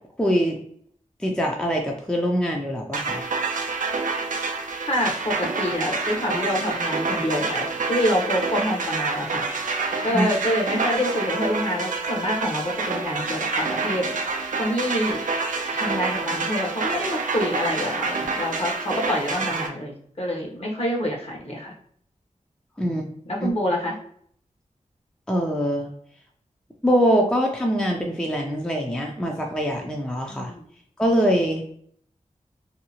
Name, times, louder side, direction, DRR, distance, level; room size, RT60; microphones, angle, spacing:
voice 1, 0.2-0.6 1.2-3.2 10.1-10.3 22.8-23.0 23.4-23.5 25.3-25.9 26.8-30.5 31.0-31.6, equal, 5° left, 1 dB, 0.5 m, -23 dB
sound 1, 2.9-19.7, right 4 dB, 85° right, 0.4 m, -27 dB
voice 2, 4.9-9.6 10.0-14.2 14.6-15.2 15.7-21.7 22.8-24.0 30.3-30.6, left 1 dB, 50° left, -2 dB, 1.0 m, -27 dB
2.7 x 2.3 x 2.8 m, 0.63 s
wide cardioid pair, 55°, 13 cm